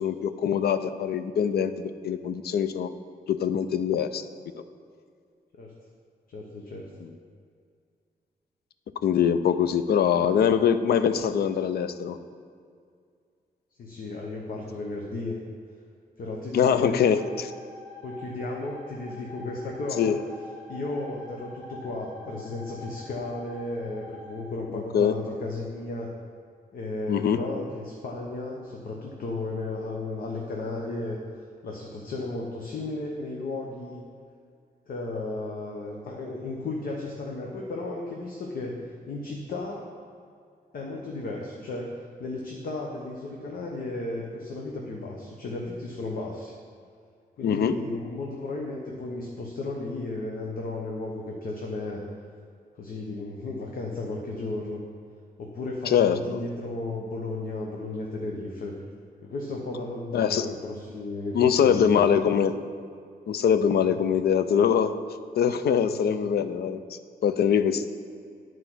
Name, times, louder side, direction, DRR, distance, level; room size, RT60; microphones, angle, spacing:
voice 1, 0.0-2.9 3.3-4.2 9.0-12.2 16.5-17.5 20.0-20.2 24.7-25.1 27.1-27.4 47.4-47.8 55.9-56.4 60.1-60.5 61.3-62.6 63.3-64.9 65.4-67.9, left 8 dB, 80° left, 11 dB, 0.5 m, -23 dB
voice 2, 6.3-6.9 13.8-15.4 16.2-17.1 18.0-20.2 20.7-26.1 26.7-31.2 31.6-34.0 34.9-38.7 39.1-39.9 40.7-46.5 47.4-52.0 52.7-54.8 55.4-58.7 59.2-62.0 63.8-64.0 65.8-66.2, left 2 dB, 60° left, -1 dB, 0.9 m, -34 dB
sound 1, 17.1-24.4, left 2 dB, 35° left, 2.4 m, -45 dB
10.0 x 4.6 x 6.1 m, 2.2 s
wide cardioid pair, 165°, 16 cm